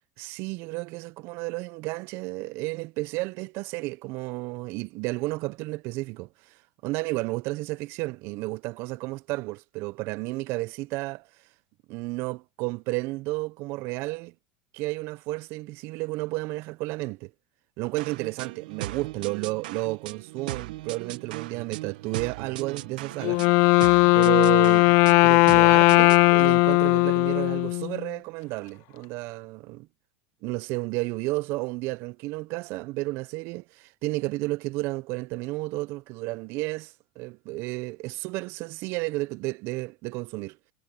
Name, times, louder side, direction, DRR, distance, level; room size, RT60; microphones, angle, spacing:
voice 1, 0.2-6.5 6.8-11.2 11.9-14.3 14.7-17.3 17.8-23.5 24.1-24.9 25.2-29.9 30.4-40.6, right 22 dB, 60° right, 0.7 m, -32 dB
sound 1, 18.0-26.3, right 16 dB, 80° right, 1.7 m, -38 dB
Wind instrument woodwind instrument, 23.2-28.1, left 26 dB, 60° left, 0.4 m, -18 dB
supercardioid pair, 110°, 5 cm